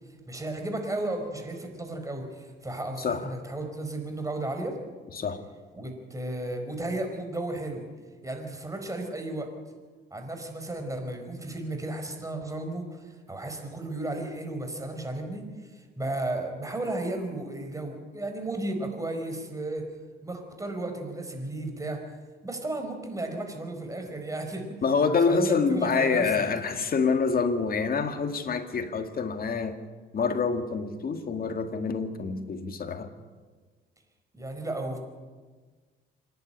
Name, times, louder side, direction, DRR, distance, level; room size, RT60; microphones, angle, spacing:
voice 1, 0.3-4.8 5.7-7.8 8.2-9.5 10.1-19.9 20.2-22.0 22.4-24.8 25.1-26.5 34.3-35.0, right 2 dB, 15° right, 4.7 m, -34 dB
voice 2, 3.0-3.3 5.1-5.4 24.8-29.8 30.1-33.1, left 5 dB, 50° left, 2.0 m, -26 dB
26.0 x 11.0 x 10.0 m
cardioid pair, 90°, 20 cm